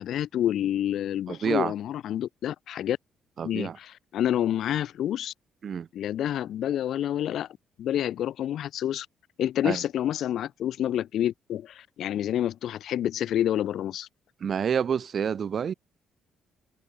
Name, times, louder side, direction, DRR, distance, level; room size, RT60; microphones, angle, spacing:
voice 1, 0.0-3.0 3.4-5.3 5.9-7.5 7.8-9.1 9.4-14.1, left 11 dB, 75° left, 0.3 m, -28 dB
voice 2, 1.3-1.7 3.4-3.8 5.6-5.9 9.6-9.8 14.4-15.7, right 7 dB, 50° right, 0.9 m, -28 dB
cardioid pair, 90°, 0 cm